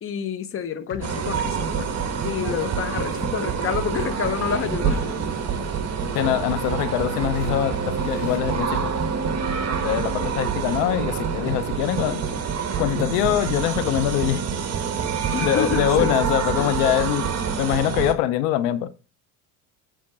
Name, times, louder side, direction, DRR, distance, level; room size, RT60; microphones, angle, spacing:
voice 1, 0.0-1.9 2.2-5.2 15.3-16.2 16.6-16.9, left 7 dB, 30° left, 0.9 m, -28 dB
sound 1, 0.9-11.7, left 3 dB, 60° left, 1.5 m, -42 dB
sound 2, 1.0-18.1, right 6 dB, 35° right, 1.4 m, -26 dB
voice 2, 6.1-7.8 8.0-8.9 9.8-12.2 12.8-14.4 15.4-18.9, left 12 dB, 85° left, 0.7 m, -23 dB
8.7 x 3.6 x 5.9 m
supercardioid pair, 110°, 45 cm